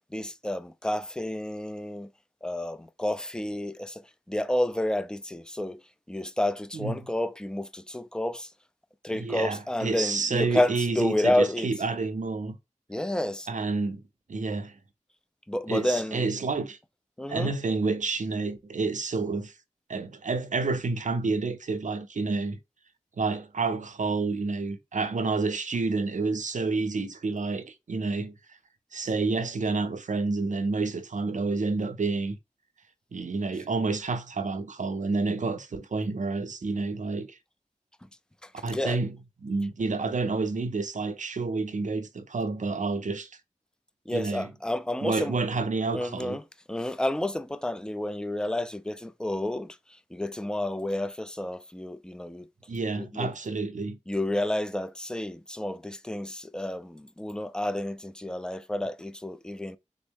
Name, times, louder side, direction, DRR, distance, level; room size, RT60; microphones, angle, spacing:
voice 1, 0.1-2.1 2.4-5.8 6.1-8.5 9.0-11.7 12.9-13.5 15.5-16.3 17.2-17.5 38.4-39.0 44.1-45.4 45.9-49.8 50.1-52.5 53.0-53.3 54.1-59.8, left 1 dB, 5° left, 0.4 m, -30 dB
voice 2, 9.1-12.6 13.5-14.0 14.3-14.7 15.7-16.8 17.3-19.5 19.9-22.6 23.2-28.3 28.9-32.4 33.1-37.4 38.6-39.2 39.4-43.3 44.1-44.5 45.0-46.4 52.7-54.0, right 3 dB, 75° right, 0.5 m, -29 dB
3.5 x 2.1 x 3.5 m
wide cardioid pair, 45°, 13 cm